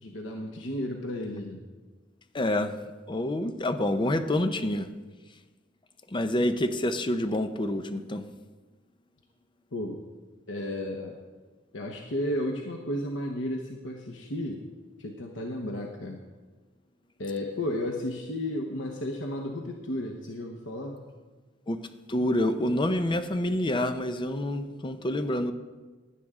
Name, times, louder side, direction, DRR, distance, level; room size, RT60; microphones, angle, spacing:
voice 1, 0.0-1.6 9.7-10.0 10.5-11.2 11.7-14.6 15.0-16.2 17.2-21.0, left 1 dB, 90° left, 2 dB, 1.0 m, -33 dB
voice 2, 2.3-2.8 3.1-4.9 6.1-8.3 21.7-25.5, left 1 dB, 25° left, 9 dB, 0.6 m, -27 dB
16.5 x 10.0 x 3.7 m, 1.3 s
head